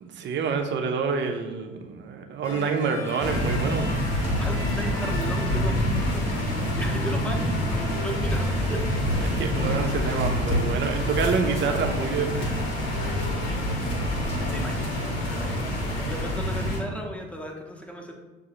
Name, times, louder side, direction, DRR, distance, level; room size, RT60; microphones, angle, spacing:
voice 1, 0.0-3.9 9.2-12.5, right 5 dB, 40° right, 4 dB, 0.6 m, -27 dB
sound 1, 2.4-16.3, left 2 dB, 85° left, 0.6 m, -38 dB
sound 2, 3.2-16.8, equal, 65° left, 1.0 m, -27 dB
voice 2, 4.4-8.8 9.6-9.8 14.4-18.1, equal, 5° left, 2 dB, 0.8 m, -36 dB
6.5 x 2.3 x 2.9 m, 1.2 s
figure-of-eight pair, 50°, 30 cm